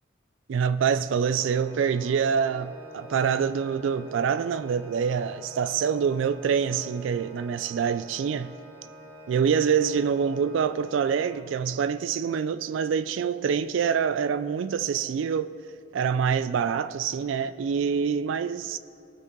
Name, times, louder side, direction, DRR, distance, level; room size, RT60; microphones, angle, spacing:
voice 1, 0.5-8.5 9.3-15.5 15.9-18.8, right 7 dB, 80° right, 0.3 m, -26 dB
Organ, 1.2-11.9, right 1 dB, 15° right, 3.0 m, -48 dB
17.5 x 6.6 x 3.7 m
head